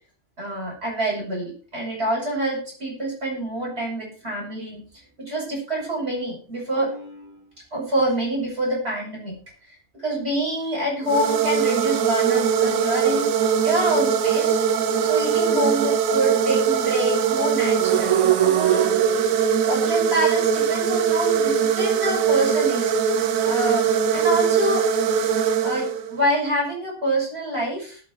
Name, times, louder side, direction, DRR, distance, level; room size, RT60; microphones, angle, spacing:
voice 1, 0.4-4.8 5.2-9.3 9.7-14.6 15.1-18.9 19.2-19.3 19.6-24.8 25.2-25.3 25.6-28.0, right 1 dB, 50° right, -4 dB, 8.1 m, -26 dB
sound 1, 11.0-26.3, right 7 dB, 75° right, 1.2 m, -21 dB
19.5 x 7.1 x 4.8 m, 0.40 s
omnidirectional pair, 1.4 m